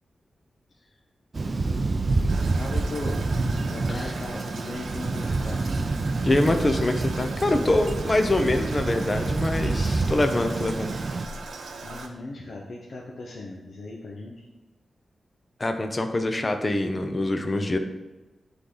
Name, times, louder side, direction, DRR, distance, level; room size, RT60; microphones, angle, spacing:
Thunder, 1.3-11.2, right 3 dB, 40° right, 0.5 m, -27 dB
Toilet flush, 2.3-12.1, right 3 dB, 90° right, 0.9 m, -40 dB
voice 1, 2.5-3.3 3.6-5.7 11.8-14.4, left 2 dB, 65° left, -2 dB, 1.0 m, -38 dB
voice 2, 6.2-10.9 15.6-17.8, left 2 dB, 30° left, 6 dB, 0.7 m, -24 dB
11.5 x 4.0 x 3.9 m, 1.1 s
wide cardioid pair, 105°, 0 cm